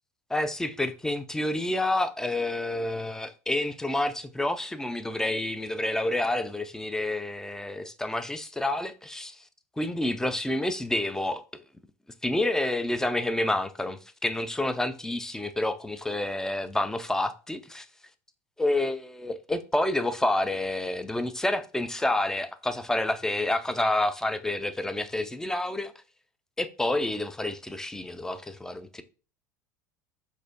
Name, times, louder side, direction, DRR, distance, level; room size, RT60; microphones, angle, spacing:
voice 1, 0.3-9.4 9.8-11.4 12.2-17.9 18.6-25.9 26.6-29.0, left 1 dB, 5° left, 0.3 m, -29 dB
4.0 x 2.5 x 2.7 m
figure-of-eight pair, 70°, 9 cm